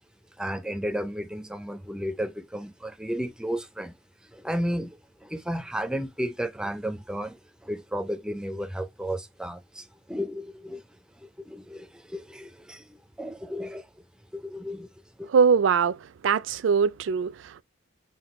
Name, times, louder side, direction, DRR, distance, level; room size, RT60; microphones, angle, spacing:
voice 1, 0.4-4.0 4.2-10.8 11.2-13.9 14.3-14.9 15.2-15.3, equal, 5° right, 0.4 m, -33 dB
voice 2, 15.3-17.6, right 6 dB, 70° right, 0.3 m, -22 dB
5.8 x 2.3 x 3.1 m
head